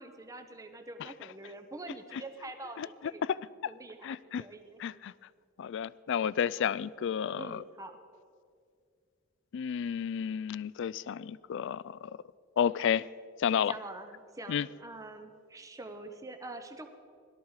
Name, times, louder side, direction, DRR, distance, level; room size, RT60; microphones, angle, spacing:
voice 1, 0.0-3.3 3.7-4.8 6.6-6.8 7.4-7.9 13.7-16.9, right 2 dB, 15° right, 6 dB, 0.7 m, -45 dB
voice 2, 4.0-4.4 4.8-5.1 5.6-7.6 9.5-12.1 12.6-13.1 13.4-13.7 14.5-14.7, left 8 dB, 60° left, 20 dB, 0.3 m, -31 dB
17.5 x 13.0 x 4.8 m, 2.2 s
head